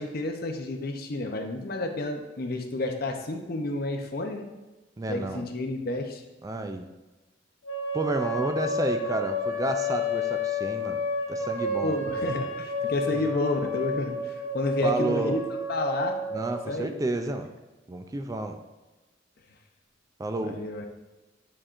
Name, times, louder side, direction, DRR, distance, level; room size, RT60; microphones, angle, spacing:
voice 1, 0.0-4.5 5.1-6.2 11.8-15.4 15.7-16.2 16.7-17.0 20.4-20.9, left 2 dB, 55° left, 4 dB, 0.7 m, -30 dB
voice 2, 5.0-5.5 6.4-6.9 7.9-11.0 11.3-12.0 13.1-13.2 14.8-15.4 16.3-17.5 17.9-18.6 20.2-20.6, right 2 dB, 20° right, 6 dB, 0.3 m, -30 dB
sound 1, 7.6-16.6, left 2 dB, 85° left, 1.2 m, -30 dB
8.9 x 4.3 x 2.5 m, 1.1 s
head